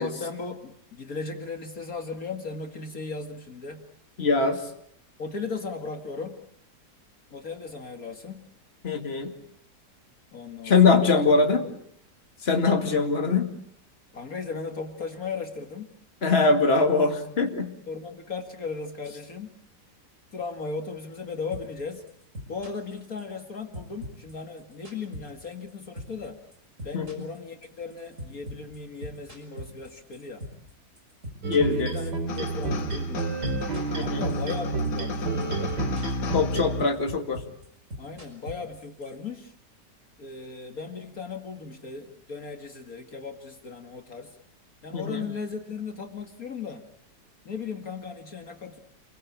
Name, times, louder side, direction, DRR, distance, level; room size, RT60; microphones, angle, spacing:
voice 1, 0.0-3.8 5.2-6.4 7.3-8.4 10.3-11.3 11.6-11.7 14.1-15.9 17.9-19.5 20.3-22.0 22.5-26.4 26.8-30.4 31.7-33.3 34.0-35.8 36.8-36.9 38.0-39.5 40.2-44.3 44.8-46.8 47.5-48.8, left 4 dB, 55° left, 5 dB, 2.4 m, -36 dB
voice 2, 4.2-4.6 8.8-9.3 10.6-11.6 12.4-13.5 16.2-17.7 26.9-27.2 31.5-31.9 33.9-34.2 36.3-37.4 44.9-45.3, left 4 dB, 35° left, 5 dB, 2.5 m, -22 dB
sound 1, 21.5-21.8 22.1-23.5 23.7-25.7 26.0-26.3 26.5-30.7 31.0-32.4 32.6-34.6 34.9-35.2 35.4-36.3 36.5-39.1, equal, 45° right, 6.4 m, -40 dB
sound 2, 31.4-36.9, right 2 dB, 75° right, 3.0 m, -29 dB
sound 3, 32.3-37.1, left 7 dB, 80° left, 2.0 m, -38 dB
28.5 x 22.5 x 8.7 m, 0.69 s
omnidirectional pair, 1.8 m